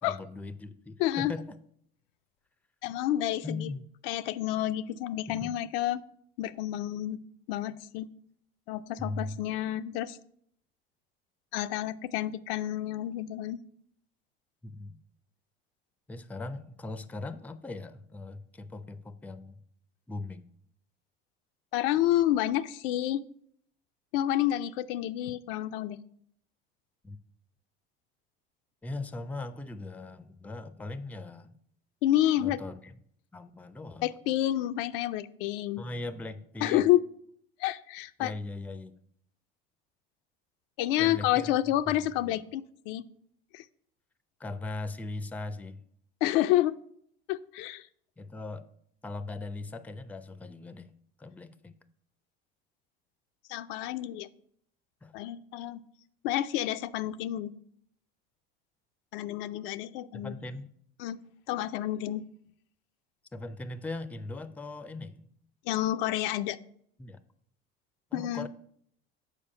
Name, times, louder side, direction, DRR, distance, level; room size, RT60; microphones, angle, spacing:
voice 1, 0.0-1.6 3.4-3.8 5.3-5.6 9.0-9.4 14.6-15.0 16.1-19.6 20.1-20.5 27.0-27.2 28.8-31.5 32.4-32.9 33.3-34.2 35.8-36.8 38.2-38.9 41.0-42.4 44.4-45.8 48.2-48.7 49.0-50.9 51.2-51.8 55.0-55.1 60.1-60.7 63.3-65.3 67.0-67.2 68.1-68.5, left 2 dB, 5° left, 14 dB, 0.4 m, -39 dB
voice 2, 1.0-1.3 2.8-3.7 4.0-6.0 6.4-7.2 7.5-8.1 8.7-10.2 11.5-13.6 21.7-23.2 24.1-26.0 32.0-32.6 34.0-35.8 36.6-37.0 37.6-38.3 40.8-43.1 43.5-43.6 46.2-46.8 47.3-47.9 53.5-54.3 55.1-55.8 56.2-57.5 59.1-60.3 61.0-61.2 61.5-62.2 65.7-66.6 68.1-68.5, left 13 dB, 65° left, 11 dB, 0.4 m, -29 dB
7.0 x 4.8 x 5.4 m, 0.67 s
hypercardioid pair, 65°, 30 cm